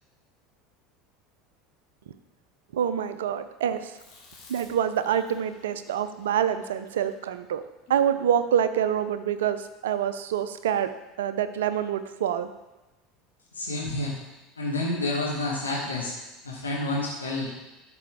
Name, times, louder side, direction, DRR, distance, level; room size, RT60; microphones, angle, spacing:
voice 1, 2.7-4.0 4.5-7.6 7.9-10.9 11.2-12.5, right 9 dB, 70° right, 12 dB, 0.5 m, -26 dB
Chewing mastication, 3.9-8.3, left 4 dB, 45° left, 2.3 m, -54 dB
voice 2, 13.5-14.2 14.6-16.2 16.4-17.5, left 2 dB, 80° left, -3 dB, 1.4 m, -29 dB
12.0 x 5.3 x 3.6 m, 1.1 s
figure-of-eight pair, 75°, 0 cm